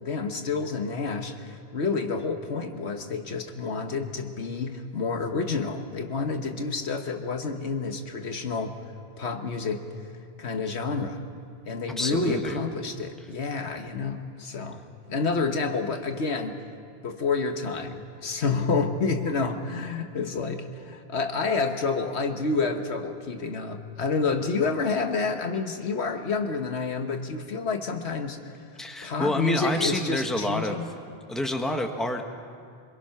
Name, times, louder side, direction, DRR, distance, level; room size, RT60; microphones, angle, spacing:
voice 1, 0.0-8.8 9.2-9.8 10.4-11.2 11.6-14.8 15.1-16.6 17.0-28.5 29.0-30.9, left 4 dB, 80° left, 5 dB, 1.6 m, -29 dB
voice 2, 12.0-12.6 28.8-30.8 31.3-32.2, left 1 dB, ahead, 3 dB, 1.3 m, -28 dB
25.0 x 22.5 x 5.9 m, 2.2 s
omnidirectional pair, 1.1 m